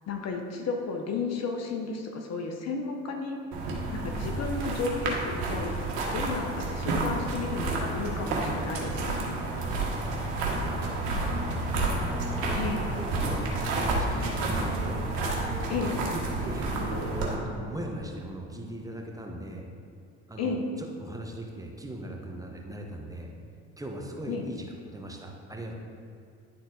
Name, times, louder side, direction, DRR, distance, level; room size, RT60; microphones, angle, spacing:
voice 1, 0.1-3.4 3.9-5.8 6.1-9.4 12.6-12.9 15.7-16.0 20.4-20.6 24.3-24.4, left 4 dB, 50° left, 3 dB, 1.0 m, -33 dB
sound 1, 3.5-17.3, right 2 dB, 80° right, 1.4 m, -30 dB
voice 2, 10.3-12.2 12.5-12.6 12.9-15.0 15.6-15.8 16.1-17.0 17.3-19.6 20.3-20.5 20.8-23.3 23.8-25.7, right 1 dB, 10° right, 0 dB, 1.1 m, -40 dB
10.5 x 4.0 x 3.9 m, 2.5 s
supercardioid pair, 75°, 33 cm